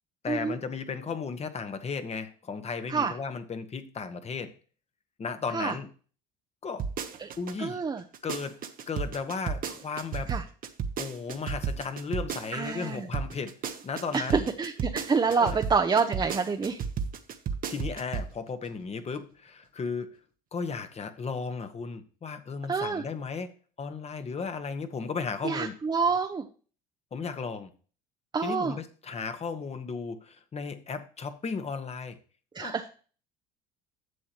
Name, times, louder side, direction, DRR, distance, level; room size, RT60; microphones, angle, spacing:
voice 1, 0.2-4.5 5.2-5.9 6.6-6.9 7.4-7.8 8.2-8.6 8.9-10.4 11.0-13.6 13.8-14.5 15.4-15.6 17.7-20.2 20.5-25.8 27.1-27.7 28.4-32.2 32.6-32.7, left 5 dB, 30° left, 9 dB, 1.4 m, -35 dB
sound 1, 6.8-7.5 8.0-12.9 13.1-18.3 18.6-18.7, right 6 dB, 45° right, 1.2 m, -33 dB
voice 2, 7.6-8.0 10.3-10.4 12.5-13.1 14.1-16.8 22.7-23.0 25.4-26.4 28.3-28.8 32.5-32.8, right 5 dB, 20° right, 4 dB, 0.9 m, -27 dB
11.0 x 7.5 x 3.1 m, 0.39 s
supercardioid pair, 85°, 20 cm